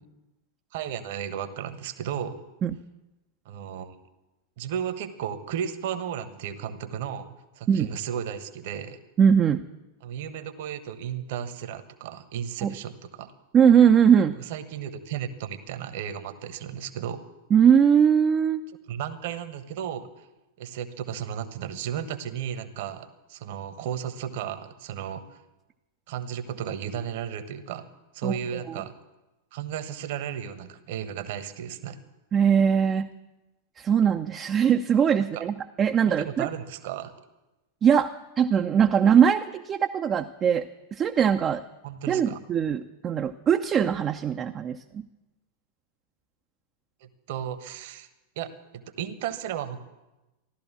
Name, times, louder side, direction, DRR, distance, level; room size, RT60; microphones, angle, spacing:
voice 1, 0.7-2.4 3.4-3.9 4.6-7.3 7.6-9.0 10.0-13.3 14.5-17.2 18.9-20.3 20.6-25.4 26.1-27.9 28.1-29.0 29.5-32.0 35.3-35.4 36.1-37.1 41.8-42.4 47.0-48.1 48.4-49.8, right 9 dB, 50° right, 12 dB, 1.1 m, -34 dB
voice 2, 9.2-9.6 12.6-12.7 13.5-14.3 17.5-18.6 28.2-28.4 28.7-28.8 32.3-33.1 33.8-36.5 37.8-38.1 38.4-41.6 42.1-45.1, right 8 dB, 25° right, 5 dB, 0.6 m, -21 dB
15.0 x 12.5 x 7.4 m, 1.0 s
figure-of-eight pair, 90°, 0 cm